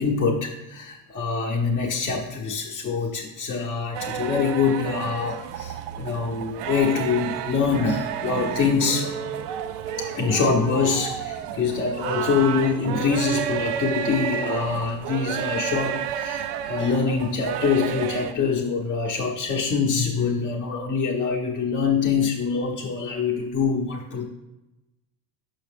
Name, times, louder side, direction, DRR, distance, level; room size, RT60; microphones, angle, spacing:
voice 1, 0.0-9.1 10.0-24.3, left 5 dB, 30° left, -3 dB, 0.5 m, -24 dB
sound 1, 3.9-18.3, right 9 dB, 80° right, 0.5 m, -31 dB
6.5 x 5.6 x 3.4 m, 1.0 s
cardioid pair, 170°, 40 cm